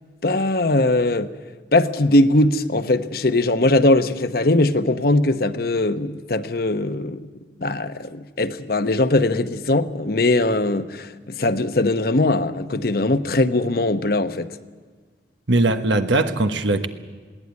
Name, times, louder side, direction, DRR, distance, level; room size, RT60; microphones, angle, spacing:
voice 1, 0.2-1.3 1.7-7.3 7.6-14.5, left 2 dB, 55° left, 0.9 m, -20 dB
voice 2, 15.5-16.9, right 2 dB, 85° right, 1.4 m, -20 dB
21.0 x 17.0 x 9.5 m
head